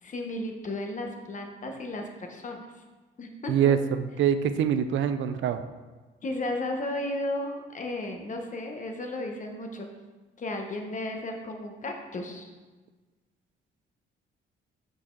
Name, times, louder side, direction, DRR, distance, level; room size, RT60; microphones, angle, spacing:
voice 1, 0.0-2.7 3.2-3.7 6.2-9.9 10.4-12.5, left 1 dB, 40° left, 3 dB, 1.0 m, -34 dB
voice 2, 3.5-5.6, right 8 dB, 75° right, 10 dB, 0.4 m, -24 dB
6.2 x 4.1 x 4.5 m, 1.3 s
cardioid pair, 90°, 20 cm